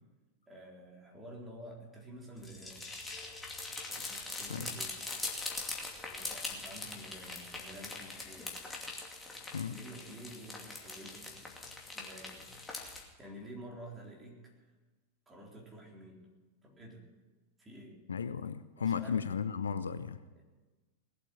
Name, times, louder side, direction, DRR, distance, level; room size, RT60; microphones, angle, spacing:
voice 1, 0.5-2.9 4.0-5.0 6.1-8.6 9.6-11.5 11.9-12.5 13.2-14.4 15.3-16.3 16.6-17.0 17.6-18.0 18.8-19.4 20.4-20.5, right 1 dB, 15° right, -2 dB, 4.1 m, -50 dB
sound 1, 2.4-13.0, left 3 dB, 10° left, 2.6 m, -42 dB
voice 2, 18.1-20.2, left 7 dB, 70° left, 13 dB, 0.6 m, -34 dB
19.0 x 8.4 x 9.1 m, 1.2 s
figure-of-eight pair, 90°, 0 cm